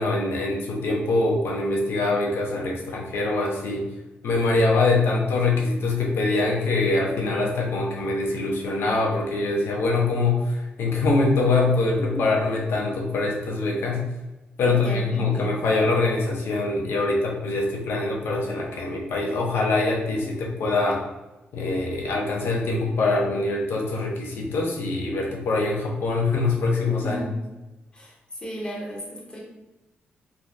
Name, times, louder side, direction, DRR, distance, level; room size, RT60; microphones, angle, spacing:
voice 1, 0.0-3.8 4.2-14.1 14.6-21.0 21.5-27.2, left 3 dB, 70° left, 0 dB, 0.7 m, -24 dB
voice 2, 12.0-12.3 14.6-15.5 27.0-27.4 27.9-28.1 28.4-29.4, equal, 20° left, -4 dB, 0.9 m, -35 dB
3.3 x 2.2 x 2.5 m, 1.0 s
cardioid pair, 90°, 4 cm